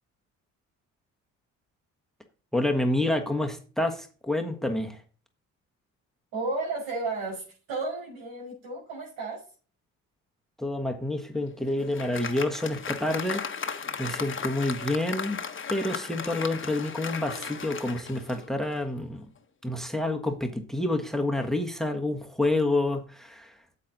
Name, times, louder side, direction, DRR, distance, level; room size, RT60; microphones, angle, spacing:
voice 1, 2.5-5.0 10.6-13.4 14.0-15.4 15.7-19.2 19.6-23.5, left 1 dB, ahead, 6 dB, 1.4 m, -28 dB
voice 2, 6.3-9.4, right 3 dB, 85° right, -1 dB, 5.6 m, -33 dB
Applause, 11.3-18.9, left 6 dB, 35° left, 1.2 m, -36 dB
8.4 x 7.8 x 4.0 m, 0.38 s
supercardioid pair, 65°, 35 cm